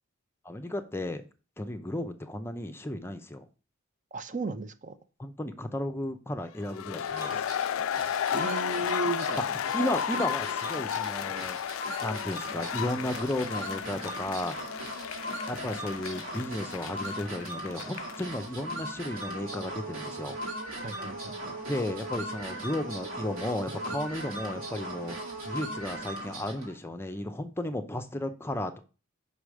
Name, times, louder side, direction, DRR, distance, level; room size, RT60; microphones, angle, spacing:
voice 1, 0.4-1.2 1.6-3.5 5.2-7.4 9.7-11.6 12.0-14.6 15.5-20.4 21.7-25.2 25.5-28.8, left 1 dB, 10° left, 0.6 m, -34 dB
voice 2, 4.1-4.9 8.3-9.4 20.8-21.5, right 3 dB, 40° right, 0.7 m, -34 dB
sound 1, 6.7-18.4, left 9 dB, 80° left, 0.3 m, -33 dB
sound 2, 7.1-26.8, right 1 dB, 75° right, 2.1 m, -39 dB
5.6 x 5.0 x 6.2 m
head